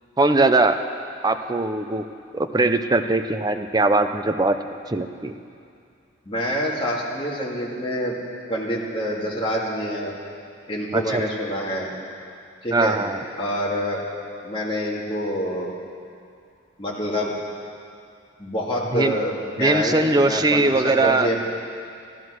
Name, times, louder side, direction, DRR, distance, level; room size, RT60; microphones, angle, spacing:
voice 1, 0.2-0.8 1.2-2.0 2.3-4.6 4.9-5.3 10.9-11.2 12.7-13.2 18.9-19.2 19.6-21.3, right 2 dB, 20° right, 7 dB, 0.6 m, -20 dB
voice 2, 6.3-8.2 8.5-10.1 10.7-11.9 12.6-13.0 13.4-14.0 14.4-15.7 16.8-17.3 18.4-21.4, equal, 30° left, -4 dB, 2.1 m, -26 dB
14.0 x 12.5 x 6.3 m, 2.4 s
head